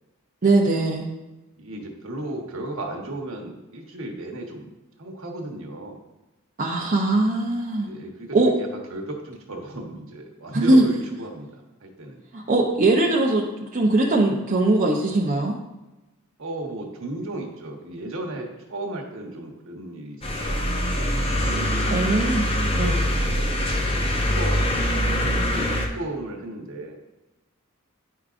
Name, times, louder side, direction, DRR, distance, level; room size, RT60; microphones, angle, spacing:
voice 1, 0.4-1.1 6.6-7.9 8.3-8.5 10.5-10.8 12.3-15.6 21.9-22.5 22.7-23.1, right 2 dB, 40° right, -2 dB, 0.6 m, -20 dB
voice 2, 1.6-4.7 5.0-6.0 7.8-12.2 16.4-22.0 23.2-23.5 23.8-24.8 25.2-27.0, right 1 dB, 65° right, 0 dB, 1.1 m, -35 dB
sound 1, 20.2-25.9, equal, 25° left, 0.6 m, -23 dB
9.9 x 4.8 x 2.5 m, 1.0 s
head